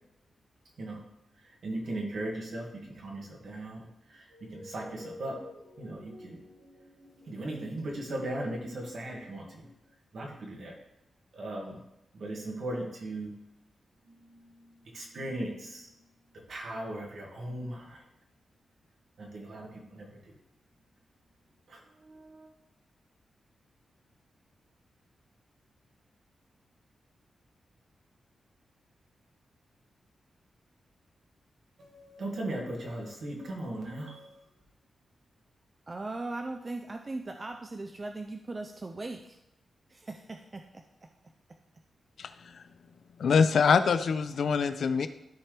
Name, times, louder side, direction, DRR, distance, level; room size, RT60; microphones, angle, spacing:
voice 1, 1.6-2.7 3.0-9.7 10.1-10.7 11.3-11.8 12.1-13.3 14.1-15.9 16.5-18.0 19.2-20.3 21.7-22.5 31.8-34.4, right 1 dB, 65° right, -1 dB, 2.1 m, -38 dB
voice 2, 35.9-39.4 39.9-40.8, right 2 dB, 30° right, 5 dB, 0.5 m, -39 dB
voice 3, 43.2-45.1, left 5 dB, 70° left, 12 dB, 0.5 m, -24 dB
13.0 x 4.5 x 3.4 m, 0.86 s
wide cardioid pair, 115°, 0 cm